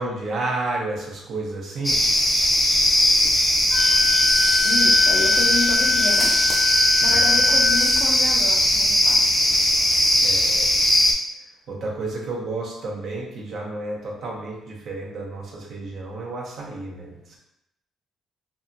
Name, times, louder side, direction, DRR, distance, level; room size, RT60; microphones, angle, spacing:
voice 1, 0.0-2.0 7.1-7.5 10.2-10.8 11.7-17.4, right 2 dB, 65° right, -2 dB, 0.7 m, -31 dB
sound 1, 1.8-11.1, left 1 dB, 10° left, 0.5 m, -19 dB
Wind instrument woodwind instrument, 3.7-7.9, left 6 dB, 85° left, 1.0 m, -25 dB
voice 2, 4.6-6.3 7.0-9.3, left 2 dB, 65° left, 0 dB, 0.6 m, -30 dB
2.7 x 2.4 x 2.6 m, 0.82 s
cardioid pair, 90°, 0 cm